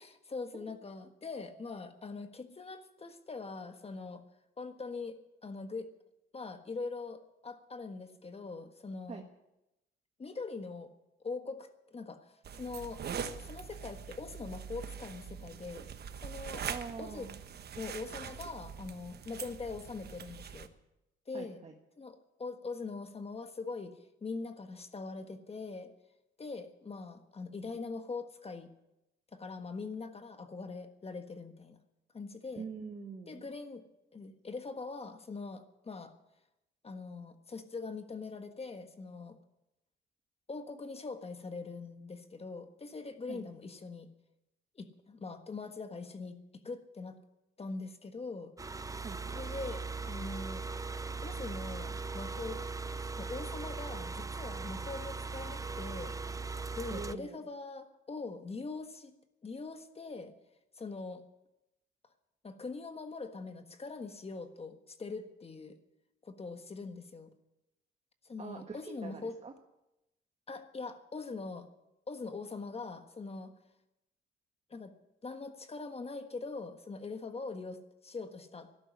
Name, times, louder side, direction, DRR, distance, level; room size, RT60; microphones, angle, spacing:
voice 1, 0.0-4.2 4.6-5.2 5.4-5.9 6.3-9.2 10.2-10.9 11.2-13.0 13.4-15.9 16.2-16.7 17.0-17.3 17.8-20.7 21.3-21.6 22.0-25.9 26.4-28.7 29.3-31.8 32.1-32.6 33.3-33.8 34.1-36.1 36.8-39.4 40.5-44.1 44.7-47.2 47.6-48.5 49.3-50.6 51.2-52.6 53.2-56.4 56.7-60.3 60.7-61.2 62.4-65.8 66.2-67.3 68.2-69.4 70.5-71.7 72.1-73.5 74.7-74.9 75.2-78.7, left 4 dB, 30° left, 8 dB, 1.5 m, -42 dB
sound 1, 12.4-20.7, right 7 dB, 55° right, 1.1 m, -43 dB
voice 2, 16.7-17.4 21.3-21.7 32.5-33.5 43.3-43.4 49.0-49.4 56.9-57.4 68.4-69.5, right 5 dB, 35° right, 3 dB, 1.5 m, -44 dB
sound 2, 48.6-57.2, right 4 dB, 15° right, 0.7 m, -39 dB
13.0 x 12.0 x 8.4 m, 0.91 s
cardioid pair, 90°, 20 cm